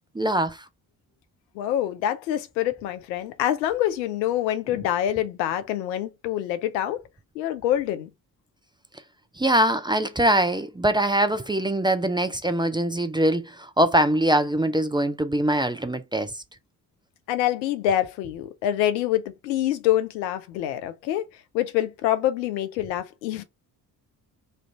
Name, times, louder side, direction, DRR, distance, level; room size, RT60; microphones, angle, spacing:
voice 1, 0.1-0.6 9.4-16.4, right 1 dB, 10° right, 0.5 m, -23 dB
voice 2, 1.5-7.0 7.4-8.1 17.3-21.3 21.5-23.4, left 12 dB, 85° left, 0.6 m, -26 dB
3.1 x 2.5 x 4.4 m
hypercardioid pair, 45°, 50 cm